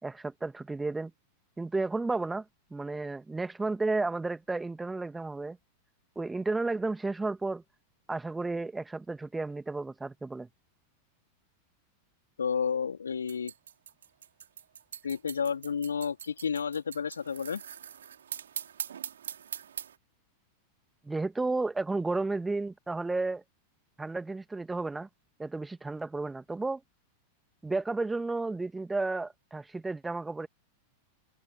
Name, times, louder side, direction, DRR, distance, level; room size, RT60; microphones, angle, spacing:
voice 1, 0.0-1.1 1.6-2.4 2.7-5.6 6.2-7.6 8.1-10.5 21.0-23.4 24.0-25.1 25.4-26.8 27.6-30.5, right 3 dB, 10° right, 2.1 m, -32 dB
voice 2, 12.4-13.5 15.0-17.6, left 6 dB, 70° left, 3.8 m, -31 dB
sound 1, 13.3-20.0, right 8 dB, 65° right, 5.7 m, -42 dB
figure-of-eight pair, 90°, 0 cm